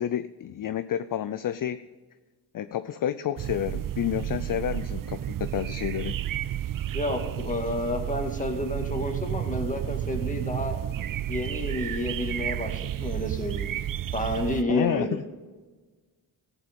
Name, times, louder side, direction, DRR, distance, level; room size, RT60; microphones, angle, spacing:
voice 1, 0.0-1.8 2.5-6.1 14.7-15.2, left 10 dB, 50° left, 12 dB, 0.5 m, -30 dB
sound 1, 3.4-14.6, right 11 dB, 55° right, 0.5 m, -32 dB
voice 2, 6.9-10.8 11.3-13.7 14.1-15.2, left 1 dB, 20° left, 2 dB, 2.2 m, -30 dB
14.0 x 8.4 x 5.3 m, 1.3 s
cardioid pair, 75°, 42 cm